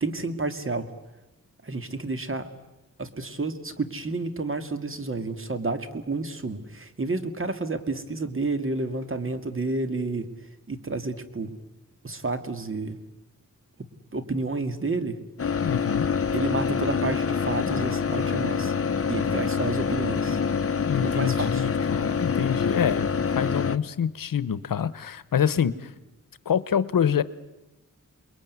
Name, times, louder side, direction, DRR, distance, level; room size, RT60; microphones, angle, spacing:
voice 1, 0.0-0.9 1.6-2.5 3.0-10.3 10.7-11.5 12.0-13.0 14.1-15.2 16.3-18.7 19.1-20.4 21.0-21.7, right 3 dB, 40° right, 9 dB, 2.2 m, -30 dB
sound 1, 15.4-23.8, left 6 dB, 45° left, 1.0 m, -26 dB
voice 2, 15.6-16.1 20.8-23.1 23.3-25.9 26.5-27.2, left 8 dB, 80° left, 17 dB, 1.0 m, -26 dB
28.5 x 22.0 x 9.5 m, 1.0 s
wide cardioid pair, 90°, 33 cm